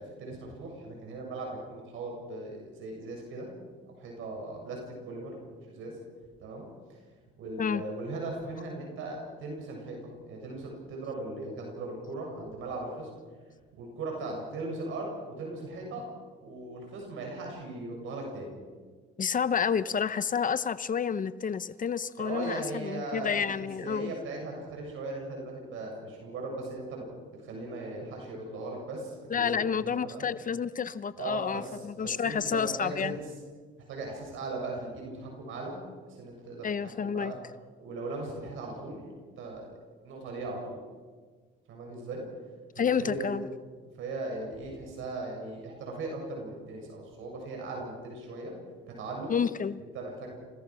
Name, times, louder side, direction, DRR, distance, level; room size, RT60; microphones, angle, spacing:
voice 1, 0.0-3.5 3.9-5.4 5.6-6.0 6.4-6.6 6.9-7.0 7.4-13.1 13.8-16.0 16.3-18.5 19.8-19.9 22.2-27.0 27.4-29.8 30.0-30.3 31.2-33.2 33.9-35.8 36.1-37.4 37.8-39.0 39.4-39.7 40.0-40.8 41.7-42.2 42.8-43.4 44.0-48.5 49.0-49.3 49.9-50.4, right 2 dB, 85° right, 0 dB, 7.4 m, -38 dB
voice 2, 19.2-24.1 29.3-33.2 36.6-37.3 42.8-43.4 49.3-49.8, left 7 dB, 40° left, 15 dB, 0.8 m, -30 dB
30.0 x 17.0 x 6.3 m, 1.5 s
cardioid pair, 90°, 20 cm